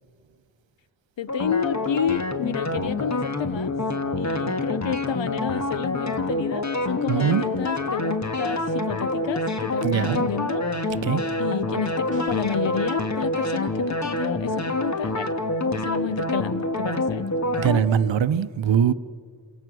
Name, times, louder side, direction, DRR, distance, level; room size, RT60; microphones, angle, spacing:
voice 1, 1.2-3.7 4.2-11.0 11.4-15.3 15.6-17.2, left 8 dB, 80° left, 0.9 m, -30 dB
sound 1, 1.3-17.8, left 2 dB, 40° left, 1.7 m, -27 dB
voice 2, 7.1-7.4 9.8-10.2 10.9-11.2 17.6-18.9, right 8 dB, 85° right, 0.8 m, -22 dB
sound 2, 12.1-12.6, right 3 dB, 20° left, 5.6 m, -42 dB
30.0 x 27.5 x 6.2 m
cardioid pair, 55°, 44 cm